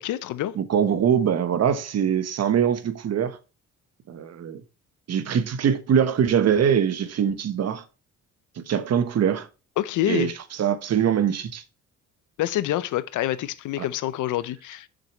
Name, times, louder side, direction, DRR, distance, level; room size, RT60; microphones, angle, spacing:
voice 1, 0.0-0.6 9.8-10.3 12.4-14.9, left 13 dB, 80° left, 0.7 m, -27 dB
voice 2, 0.5-3.4 4.1-4.6 5.1-7.8 8.6-9.5 10.1-10.3 10.6-11.6 13.8-13.9, right 8 dB, 55° right, 1.1 m, -23 dB
6.6 x 6.2 x 3.1 m
cardioid pair, 90°, 30 cm